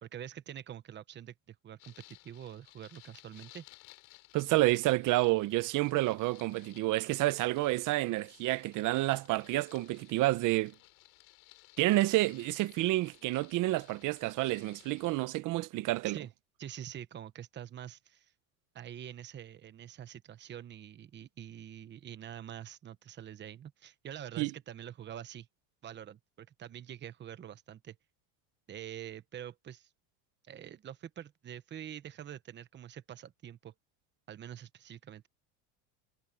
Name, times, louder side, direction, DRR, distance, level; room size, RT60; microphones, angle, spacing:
voice 1, 0.0-3.6 16.0-16.3 16.6-18.3 18.7-25.5 25.8-28.0 28.7-29.9 30.5-33.7 34.3-35.3, right 10 dB, 25° right, 1.0 m, -46 dB
sound 1, 1.8-15.2, left 28 dB, 85° left, 4.9 m, -59 dB
voice 2, 4.3-10.7 11.8-16.2 24.4-24.5, right 18 dB, 50° right, 0.9 m, -29 dB
cardioid pair, 140°, 41 cm